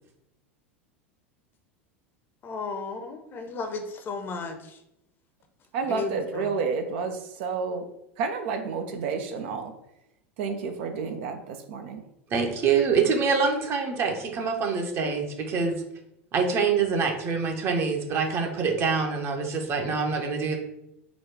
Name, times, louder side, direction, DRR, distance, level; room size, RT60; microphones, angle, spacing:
voice 1, 2.4-4.8 5.9-6.5, left 4 dB, 30° left, 5 dB, 0.7 m, -34 dB
voice 2, 5.7-7.9 8.2-9.7 10.4-12.0, right 5 dB, 60° right, 6 dB, 0.5 m, -30 dB
voice 3, 12.3-15.8 16.3-20.6, right 5 dB, 40° right, 3 dB, 0.9 m, -25 dB
4.0 x 2.3 x 4.6 m, 0.83 s
figure-of-eight pair, 85°, 7 cm